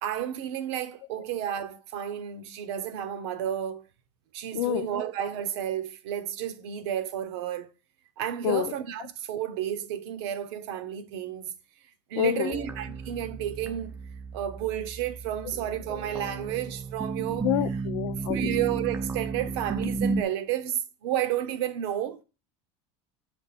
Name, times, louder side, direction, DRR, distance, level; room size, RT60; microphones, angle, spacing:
voice 1, 0.0-3.9 4.3-7.7 8.2-11.5 12.1-14.0 14.3-17.5 18.3-22.2, right 10 dB, 70° right, 1.0 m, -31 dB
voice 2, 4.5-4.9 8.4-8.7 12.2-12.6 17.4-18.5, left 13 dB, 80° left, 0.7 m, -27 dB
sound 1, 12.5-20.2, right 4 dB, 15° right, 0.6 m, -33 dB
7.1 x 3.3 x 5.9 m
supercardioid pair, 140°, 14 cm